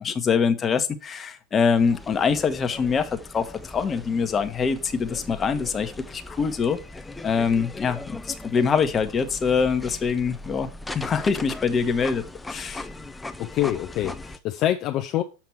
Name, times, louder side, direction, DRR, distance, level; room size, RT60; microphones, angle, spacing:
voice 1, 0.0-6.8 7.2-10.7 10.9-12.9, left 6 dB, 25° left, 1.2 m, -24 dB
sound 1, 1.7-14.4, left 2 dB, 10° left, 0.7 m, -39 dB
voice 2, 13.4-15.2, left 13 dB, 45° left, 0.7 m, -25 dB
7.2 x 5.8 x 4.6 m
hypercardioid pair, 100°, 0 cm